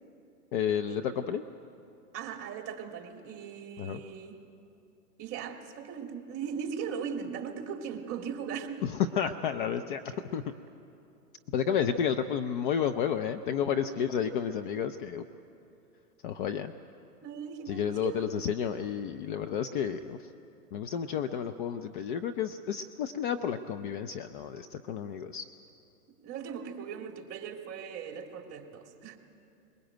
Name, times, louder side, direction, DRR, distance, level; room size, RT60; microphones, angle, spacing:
voice 1, 0.5-1.4 3.8-4.0 8.8-10.4 11.5-15.2 16.2-16.7 17.7-20.2 20.7-25.5, left 8 dB, 35° left, 9 dB, 0.6 m, -31 dB
voice 2, 2.1-4.4 5.2-8.8 17.2-18.4 26.2-29.2, right 7 dB, 25° right, 4 dB, 2.4 m, -39 dB
21.5 x 21.0 x 9.0 m, 2.7 s
hypercardioid pair, 130°, 49 cm